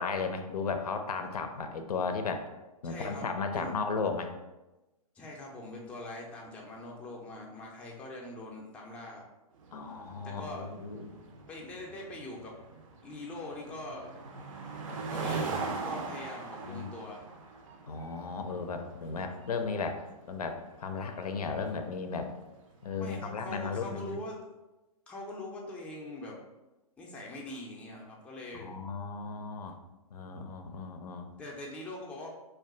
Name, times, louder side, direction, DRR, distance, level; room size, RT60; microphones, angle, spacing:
voice 1, 0.0-2.4 2.8-4.3 9.7-11.1 16.7-16.9 17.9-20.0 20.3-22.3 22.8-24.2 28.5-29.8 30.1-31.3, left 4 dB, 80° left, 6 dB, 0.4 m, -35 dB
voice 2, 2.8-3.3 3.5-3.8 5.2-9.2 10.2-10.6 11.5-12.6 13.0-14.1 15.1-15.6 15.8-17.2 23.0-24.4 25.1-26.4 27.0-28.7 31.4-32.3, left 2 dB, 5° left, -3 dB, 0.4 m, -43 dB
sound 1, 9.6-23.1, right 4 dB, 55° right, 0.5 m, -41 dB
2.3 x 2.2 x 3.6 m, 1.1 s
hypercardioid pair, 125°, 19 cm